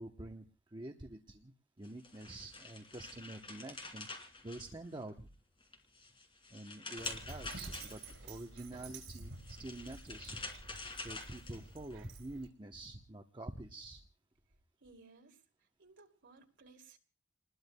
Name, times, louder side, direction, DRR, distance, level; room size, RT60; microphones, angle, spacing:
voice 1, 0.0-4.1 4.4-5.3 6.5-10.4 11.0-14.0, right 2 dB, 25° right, 3 dB, 0.9 m, -47 dB
sound 1, 1.8-5.2 5.6-8.3 9.2-11.9, left 3 dB, 25° left, 2.8 m, -47 dB
Dog, 7.0-12.5, right 3 dB, 80° right, 4.7 m, -50 dB
voice 2, 14.8-15.4 15.8-17.0, right 3 dB, 65° right, 3 dB, 2.6 m, -60 dB
29.5 x 20.5 x 2.2 m, 0.34 s
head